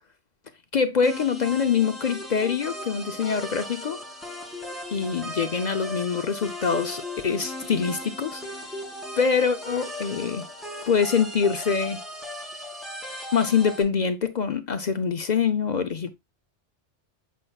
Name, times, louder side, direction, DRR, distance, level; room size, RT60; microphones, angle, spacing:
voice 1, 0.7-4.0 4.9-8.4 9.2-10.5 10.9-12.0 13.3-16.1, left 6 dB, 50° left, 0.6 m, -24 dB
sound 1, 1.0-13.8, left 1 dB, ahead, 2.0 m, -37 dB
7.7 x 5.4 x 2.3 m
omnidirectional pair, 1.2 m